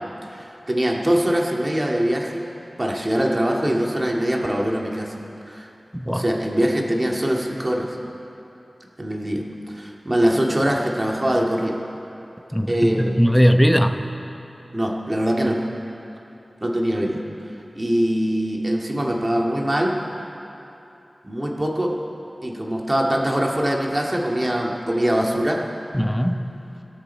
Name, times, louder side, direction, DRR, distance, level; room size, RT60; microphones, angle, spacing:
voice 1, 0.3-2.4 2.8-5.2 5.5-5.7 6.1-8.0 9.0-9.4 9.7-11.8 12.7-13.2 14.7-15.6 16.6-17.2 17.8-19.9 21.2-21.9 22.4-25.6, equal, 30° right, -1 dB, 2.0 m, -22 dB
voice 2, 5.9-6.2 12.5-14.0 25.9-26.5, equal, 5° left, 7 dB, 0.9 m, -19 dB
25.0 x 13.0 x 4.5 m, 2.9 s
wide cardioid pair, 65°, 0 cm